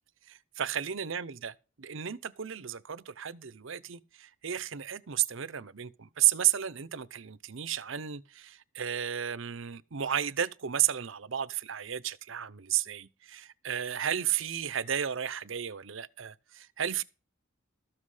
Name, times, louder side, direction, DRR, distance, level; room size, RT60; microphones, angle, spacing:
voice 1, 0.3-17.0, right 10 dB, 65° right, 0.7 m, -33 dB
13.5 x 7.6 x 4.9 m
head